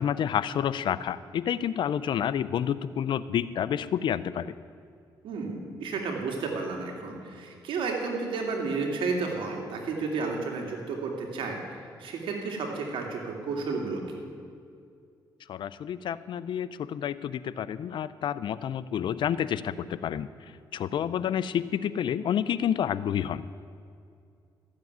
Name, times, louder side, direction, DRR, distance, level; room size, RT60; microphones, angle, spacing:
voice 1, 0.0-4.5 15.5-20.3 20.7-23.4, left 9 dB, 70° left, 16 dB, 0.5 m, -29 dB
voice 2, 5.2-14.2, right 4 dB, 80° right, 1 dB, 2.5 m, -32 dB
14.0 x 7.5 x 9.4 m, 2.4 s
cardioid pair, 80°, 8 cm